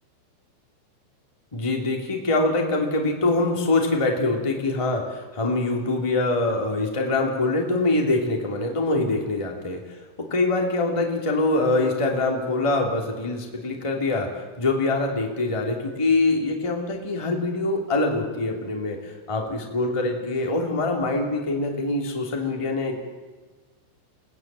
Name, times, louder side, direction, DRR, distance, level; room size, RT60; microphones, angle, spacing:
voice 1, 1.5-5.0 5.3-9.8 10.2-14.3 14.6-23.1, left 2 dB, 10° left, 1 dB, 1.7 m, -24 dB
29.5 x 19.0 x 7.6 m, 1.4 s
omnidirectional pair, 5.6 m